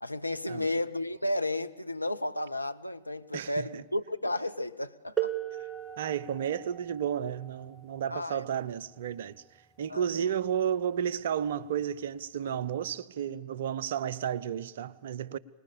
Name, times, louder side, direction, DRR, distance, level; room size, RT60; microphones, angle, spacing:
voice 1, 0.0-5.3 8.1-8.4 9.9-10.3, left 1 dB, 85° left, 0.7 m, -33 dB
voice 2, 3.3-3.8 6.0-9.4 9.8-15.4, right 9 dB, 60° right, 0.7 m, -32 dB
sound 1, 5.2-10.6 11.7-11.8 12.6-12.8, right 11 dB, 15° right, 1.1 m, -39 dB
25.5 x 20.0 x 7.0 m
figure-of-eight pair, 90°, 0 cm